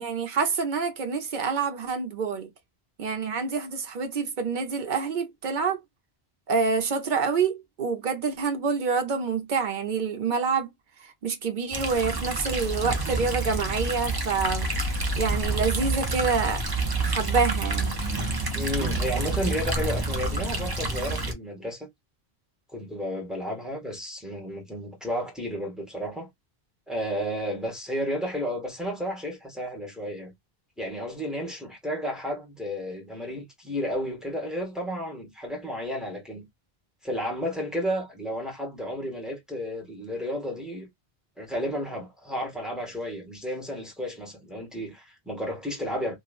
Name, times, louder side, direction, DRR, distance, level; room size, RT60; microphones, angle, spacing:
voice 1, 0.0-2.5 3.0-5.8 6.5-10.7 11.2-14.7 15.2-16.6 17.0-18.0, right 5 dB, 55° right, 0.8 m, -27 dB
sound 1, 11.7-21.3, right 2 dB, 30° right, 0.5 m, -28 dB
voice 2, 18.5-21.9 22.7-26.3 26.9-30.3 30.8-36.5 37.0-40.9 41.4-46.2, equal, ahead, 1.3 m, -32 dB
3.0 x 2.3 x 2.4 m
omnidirectional pair, 1.1 m